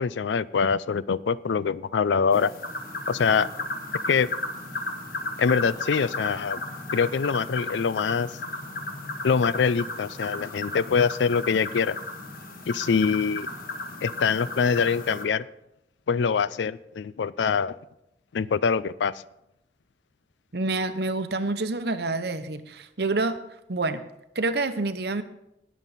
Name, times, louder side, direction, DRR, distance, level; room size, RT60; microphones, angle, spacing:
voice 1, 0.0-2.5 3.1-3.5 4.1-4.3 5.4-6.6 6.9-8.4 9.2-12.0 12.7-13.5 14.0-15.4 16.1-17.7 18.3-19.2, left 6 dB, 85° left, 18 dB, 0.4 m, -24 dB
sound 1, 2.3-15.2, left 2 dB, 55° left, 1.6 m, -35 dB
voice 2, 20.5-23.4 23.7-24.0 24.3-25.2, right 2 dB, 65° right, 10 dB, 0.9 m, -27 dB
19.5 x 7.3 x 4.1 m, 0.84 s
head